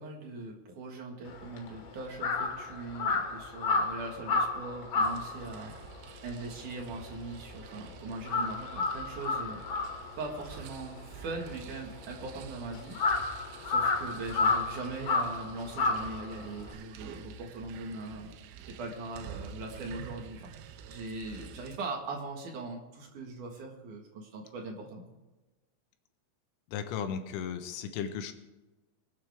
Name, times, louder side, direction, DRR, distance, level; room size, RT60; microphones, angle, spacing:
voice 1, 0.0-5.9 6.2-9.6 10.2-13.3 13.6-18.3 18.8-25.2, right 3 dB, 60° right, 1 dB, 2.2 m, -40 dB
Crow, 1.3-7.8 8.1-16.7, left 4 dB, 65° left, 4.3 m, -32 dB
sound 1, 5.0-21.8, right 7 dB, 85° right, 3.4 m, -49 dB
voice 2, 26.7-28.3, left 7 dB, 80° left, 7 dB, 3.7 m, -35 dB
24.5 x 8.9 x 3.5 m, 1.1 s
omnidirectional pair, 6.0 m